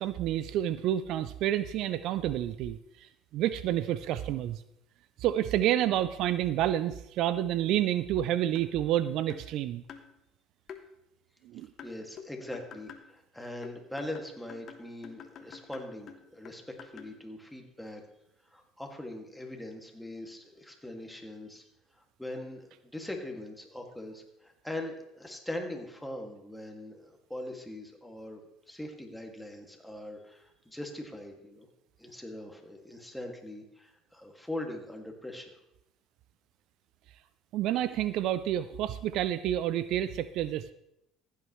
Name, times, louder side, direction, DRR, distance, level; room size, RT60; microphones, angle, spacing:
voice 1, 0.0-4.6 5.2-9.8 11.4-11.7 37.5-40.7, right 12 dB, 65° right, 15 dB, 0.4 m, -29 dB
sound 1, 8.6-8.8 9.3-9.5 9.9-10.1 10.7-10.8 11.8-13.1 13.6-17.2, left 7 dB, 50° left, 1.2 m, -48 dB
voice 2, 11.8-18.0 18.4-21.6 21.9-28.4 28.7-31.7 32.0-35.5, left 1 dB, 5° left, 2 dB, 2.2 m, -41 dB
15.0 x 9.2 x 3.2 m, 0.83 s
hypercardioid pair, 70°, 0 cm